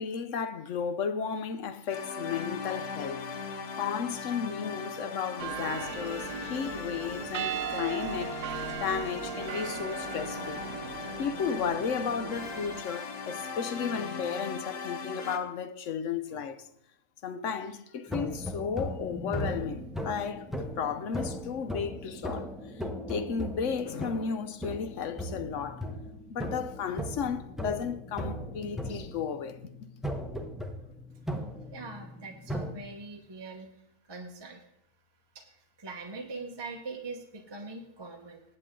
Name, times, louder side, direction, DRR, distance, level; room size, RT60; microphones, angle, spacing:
voice 1, 0.0-3.3 3.8-8.4 8.8-16.6 17.2-22.5 23.1-25.9 26.3-29.6, left 6 dB, 60° left, 0.9 m, -34 dB
sound 1, 1.9-15.4, left 5 dB, 85° left, 1.6 m, -39 dB
sound 2, 5.4-12.8, right 11 dB, 85° right, 1.1 m, -38 dB
sound 3, 18.1-32.7, equal, ahead, 0.6 m, -38 dB
voice 2, 31.7-33.7 34.1-34.6 35.3-38.4, right 3 dB, 20° right, 1.1 m, -42 dB
18.5 x 8.5 x 3.7 m
omnidirectional pair, 1.6 m